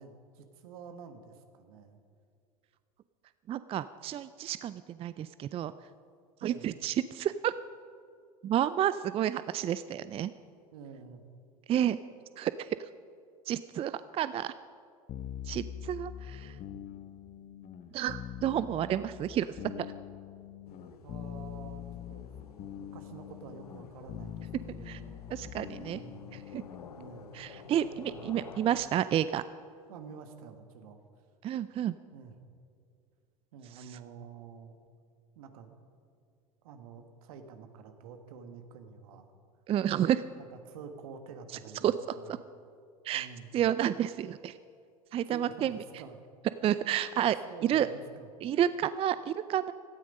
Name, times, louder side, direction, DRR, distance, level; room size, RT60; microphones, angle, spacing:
voice 1, 0.0-2.0 6.4-6.7 10.7-11.3 20.9-22.3 22.8-25.2 25.8-26.2 26.9-27.3 28.1-28.3 29.9-31.0 32.1-32.4 33.5-34.8 35.3-35.8 36.6-39.3 40.4-41.9 42.2-42.4 43.1-43.5 45.3-46.2 46.8-46.9 47.5-48.3, right 5 dB, 70° right, 7 dB, 1.6 m, -48 dB
voice 2, 3.5-5.7 6.4-7.5 8.4-10.3 11.7-12.0 12.4-12.8 13.5-14.5 15.4-16.6 17.9-19.5 19.8-19.9 24.9-25.0 25.3-26.0 26.5-26.6 27.3-29.4 31.4-32.0 39.7-40.2 41.8-42.4 43.0-43.3 43.5-44.6 45.1-45.8 46.6-47.4 47.6-47.9 48.4-49.7, right 10 dB, 30° right, 14 dB, 0.4 m, -30 dB
sound 1, 15.1-27.0, left 10 dB, 45° left, 1.1 m, -44 dB
sound 2, 20.7-28.9, left 6 dB, 85° left, 0.9 m, -51 dB
17.5 x 13.0 x 5.4 m, 2.3 s
hypercardioid pair, 80°, 19 cm